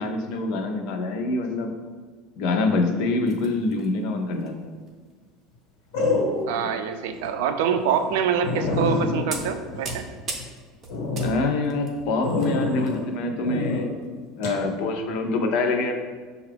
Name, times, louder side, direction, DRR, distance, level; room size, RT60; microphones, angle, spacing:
voice 1, 0.0-1.7 2.4-4.6 11.2-14.0 14.4-15.9, left 3 dB, 60° left, 4 dB, 0.5 m, -25 dB
sound 1, 3.2-3.9 4.3-4.5 4.9-5.1 6.1-6.4 7.0-7.3 8.0-8.1 8.6-8.9 9.3-13.0 13.3-13.5 14.0-14.1, right 3 dB, 30° right, 0.6 m, -38 dB
sound 2, 4.3-4.7 5.9-6.7 7.2-7.3 7.7-7.8 8.1-8.2 8.4-10.5 10.9-11.3 12.2-13.0 13.4-13.8 14.4-14.6, left 3 dB, 80° left, 1.1 m, -26 dB
voice 2, 6.5-10.0, right 7 dB, 85° right, 7 dB, 0.4 m, -25 dB
5.6 x 2.3 x 3.3 m, 1.5 s
cardioid pair, 155°, 0 cm